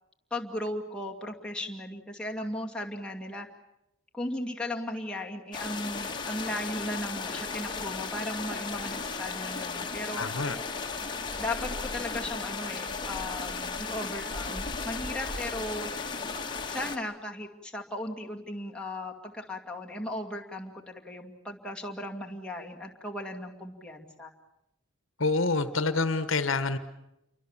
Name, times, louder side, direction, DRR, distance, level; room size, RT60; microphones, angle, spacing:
voice 1, 0.3-3.5 4.1-10.2 11.4-15.9 16.7-24.3, left 1 dB, 5° left, -2 dB, 2.3 m, -36 dB
sound 1, 5.5-17.0, left 4 dB, 20° left, 1.8 m, -35 dB
voice 2, 10.2-10.6 25.2-26.8, left 3 dB, 70° left, 12 dB, 1.3 m, -27 dB
28.5 x 24.0 x 7.4 m, 0.87 s
head